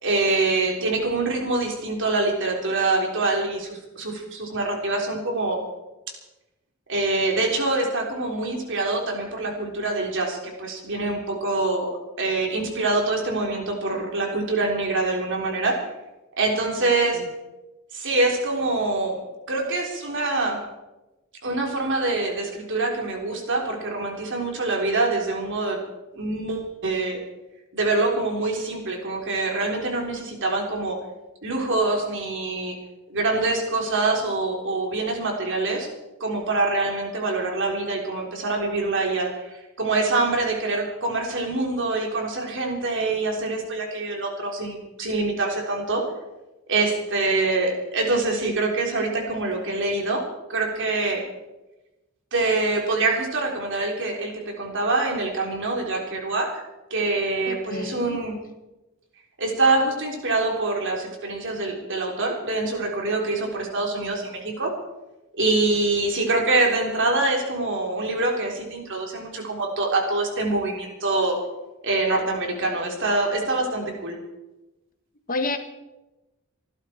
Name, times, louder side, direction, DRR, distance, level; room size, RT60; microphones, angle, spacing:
voice 1, 0.0-5.6 6.9-11.9 12.2-15.8 16.4-17.2 17.9-19.2 19.5-20.6 21.4-25.8 26.1-27.2 27.7-31.0 31.4-32.8 33.1-35.9 36.2-46.0 46.7-51.2 52.3-56.6 56.9-58.3 59.4-64.7 65.3-71.4 71.8-74.2, right 2 dB, 60° right, 1 dB, 3.7 m, -25 dB
voice 2, 16.6-17.3 57.5-58.2 75.3-75.6, left 2 dB, 40° left, 6 dB, 1.6 m, -31 dB
25.5 x 11.5 x 4.5 m, 1.0 s
head